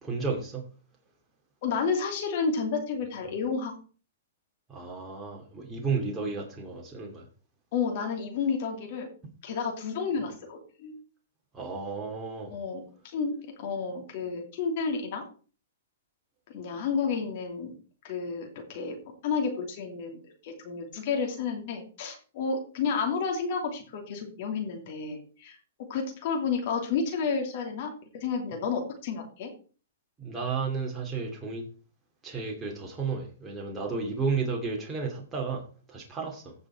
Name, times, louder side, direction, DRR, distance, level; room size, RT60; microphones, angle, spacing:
voice 1, 0.0-0.6 4.7-7.2 11.5-12.5 30.2-31.7 32.2-36.5, right 4 dB, 10° right, -1 dB, 2.5 m, -33 dB
voice 2, 1.6-3.7 7.7-9.1 9.4-10.9 12.5-12.8 13.1-15.2 16.5-17.7 18.0-19.0 19.2-20.2 20.4-25.6 25.9-29.5, left 5 dB, 50° left, 3 dB, 2.7 m, -31 dB
16.0 x 5.5 x 4.4 m, 0.39 s
hypercardioid pair, 140°, 0 cm